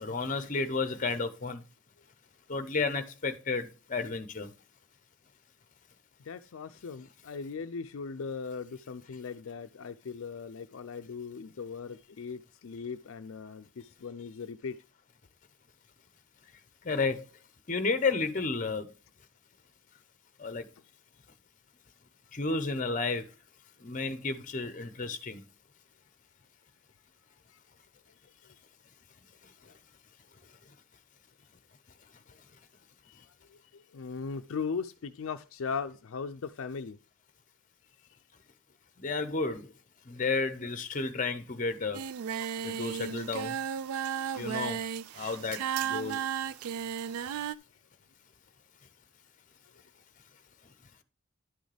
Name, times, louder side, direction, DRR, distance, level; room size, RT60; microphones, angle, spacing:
voice 1, 0.0-1.6 2.5-3.6 3.9-4.5 16.9-17.2 17.7-18.8 20.4-20.6 22.4-23.2 23.8-25.4 39.0-39.6 40.2-42.0 42.6-43.5 44.4-44.8 45.2-45.6 45.9-46.2, left 4 dB, 35° left, 0.7 m, -31 dB
voice 2, 6.2-14.8 27.5-27.6 29.7-29.8 33.1-37.0, left 5 dB, 70° left, 0.4 m, -39 dB
Singing, 41.9-47.5, right 8 dB, 85° right, 0.3 m, -34 dB
11.0 x 6.3 x 3.3 m
head